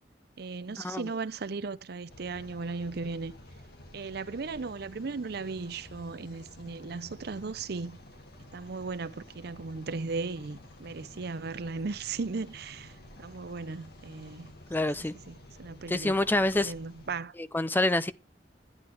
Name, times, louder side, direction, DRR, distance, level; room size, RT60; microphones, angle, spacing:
voice 1, 0.4-3.3 3.9-8.0 8.5-14.5 14.8-14.9 15.3-16.1 16.5-17.3, right 4 dB, 65° right, 0.6 m, -36 dB
sound 1, 2.1-17.2, left 1 dB, 60° left, 2.3 m, -51 dB
voice 2, 14.7-15.1 15.9-16.7 17.5-18.1, left 2 dB, 10° left, 0.4 m, -26 dB
10.5 x 9.5 x 3.4 m
head